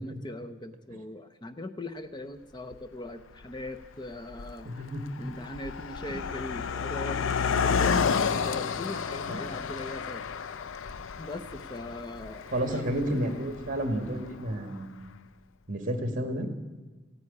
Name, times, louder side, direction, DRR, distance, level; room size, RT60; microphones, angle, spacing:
voice 1, 0.0-4.7 5.2-7.2 7.6-10.2 11.2-12.8, left 1 dB, 20° left, 9 dB, 0.6 m, -40 dB
Car passing by, 2.7-2.8 3.6-3.9 4.1-14.5, left 6 dB, 75° left, 0.5 m, -31 dB
voice 2, 4.6-5.0 9.3-9.5 12.5-15.1 15.7-16.5, right 1 dB, 40° right, 6 dB, 1.7 m, -31 dB
15.0 x 9.6 x 9.7 m, 1.3 s
head